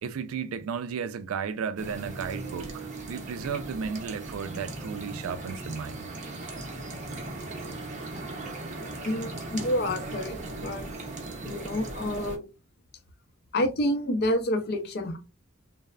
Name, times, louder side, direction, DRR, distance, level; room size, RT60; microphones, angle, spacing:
voice 1, 0.0-6.1, right 6 dB, 75° right, 0.4 m, -34 dB
sound 1, 1.8-12.4, right 2 dB, 35° right, 0.6 m, -38 dB
voice 2, 9.0-10.9 11.4-12.4 13.5-15.2, left 1 dB, 50° left, 0.5 m, -28 dB
3.1 x 2.0 x 2.3 m
head